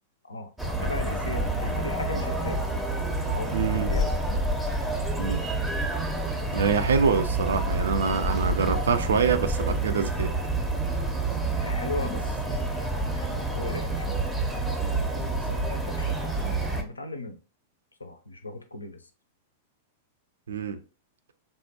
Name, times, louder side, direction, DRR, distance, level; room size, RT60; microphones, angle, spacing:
voice 1, 0.2-2.6 3.2-4.1 11.6-14.2 14.9-17.4 18.0-19.1, left 2 dB, 85° left, 0.4 m, -38 dB
sound 1, 0.6-16.8, right 2 dB, 5° right, 0.5 m, -28 dB
voice 2, 3.5-3.9 5.2-5.4 6.5-10.3 20.5-20.8, right 5 dB, 70° right, 0.3 m, -25 dB
3.3 x 2.1 x 2.8 m
figure-of-eight pair, 95°, 0 cm